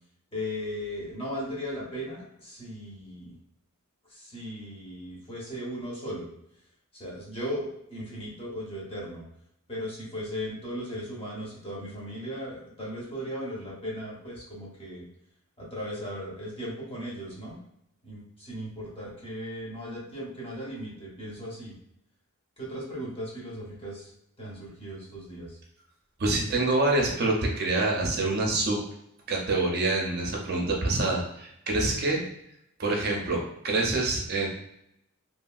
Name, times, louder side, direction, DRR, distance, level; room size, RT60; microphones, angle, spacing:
voice 1, 0.3-3.4 4.1-6.3 7.0-9.2 9.7-15.0 15.6-17.6 18.0-21.7 22.6-24.1 24.4-25.6, equal, 25° left, -6 dB, 0.9 m, -37 dB
voice 2, 26.2-28.8 29.3-32.2 32.8-34.5, right 2 dB, 45° right, 0 dB, 0.5 m, -26 dB
2.8 x 2.7 x 2.3 m, 0.77 s
head